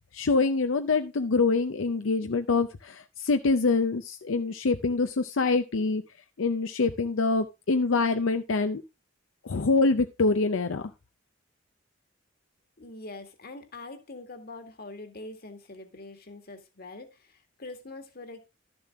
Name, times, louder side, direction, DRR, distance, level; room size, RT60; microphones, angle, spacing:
voice 1, 0.1-6.0 6.4-8.8 9.4-10.9, left 3 dB, 85° left, 8 dB, 0.6 m, -25 dB
voice 2, 12.8-18.4, left 2 dB, 50° left, 7 dB, 1.8 m, -44 dB
12.0 x 7.0 x 3.5 m, 0.26 s
head